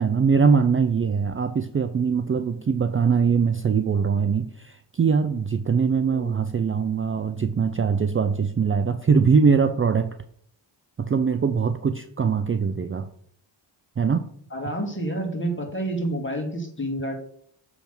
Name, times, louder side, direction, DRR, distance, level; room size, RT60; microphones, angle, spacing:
voice 1, 0.0-10.2 11.0-13.1 14.0-14.2, right 6 dB, 30° right, 9 dB, 0.5 m, -22 dB
voice 2, 14.5-17.1, right 1 dB, 25° left, 3 dB, 2.1 m, -29 dB
7.1 x 3.5 x 6.0 m, 0.62 s
cardioid pair, 60°, 48 cm